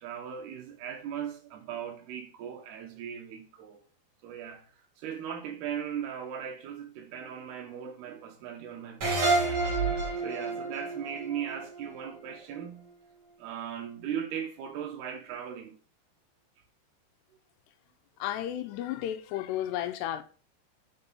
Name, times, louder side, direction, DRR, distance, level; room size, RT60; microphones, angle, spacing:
voice 1, 0.0-3.8 4.2-4.7 5.0-9.9 10.2-12.9 13.4-15.7, right 8 dB, 75° right, 3.5 m, -38 dB
sound 1, 9.0-12.3, right 3 dB, 35° right, 3.5 m, -29 dB
voice 2, 18.2-20.2, left 12 dB, 85° left, 3.0 m, -33 dB
9.3 x 6.3 x 5.5 m
omnidirectional pair, 4.7 m